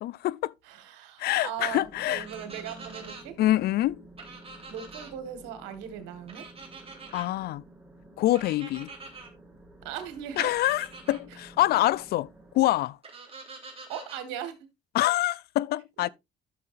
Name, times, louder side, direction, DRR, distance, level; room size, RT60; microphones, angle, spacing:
voice 1, 0.0-0.5 1.2-2.2 3.4-4.0 7.1-7.6 8.2-8.9 10.4-12.3 12.5-13.0 14.9-16.1, left 15 dB, 65° left, 0.4 m, -25 dB
voice 2, 0.6-3.4 4.7-6.5 9.8-10.5 11.3-11.4 13.3-13.4 13.9-14.6, right 9 dB, 85° right, 1.7 m, -38 dB
sound 1, 1.6-12.7, right 2 dB, 5° right, 4.7 m, -52 dB
sound 2, 2.2-3.2 4.2-5.1 6.3-7.3 8.3-9.3 10.4-11.2 13.0-14.2, right 4 dB, 35° right, 3.4 m, -45 dB
12.5 x 6.5 x 2.5 m
supercardioid pair, 80°, 18 cm